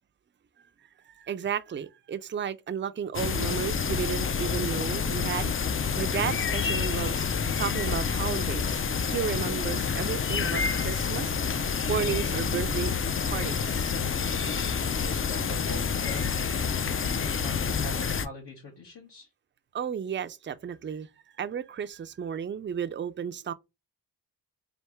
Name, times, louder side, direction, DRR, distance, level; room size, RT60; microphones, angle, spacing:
voice 1, 1.1-5.5 6.0-7.3 7.6-11.5 11.9-12.9 13.2-13.9 19.7-21.1 21.4-23.5, right 8 dB, 30° right, 0.4 m, -33 dB
sound 1, 3.1-18.3, left 6 dB, 30° left, 0.4 m, -28 dB
voice 2, 14.8-16.5 17.0-19.3, left 2 dB, 75° left, 1.4 m, -42 dB
3.4 x 2.6 x 4.4 m
wide cardioid pair, 80°, 42 cm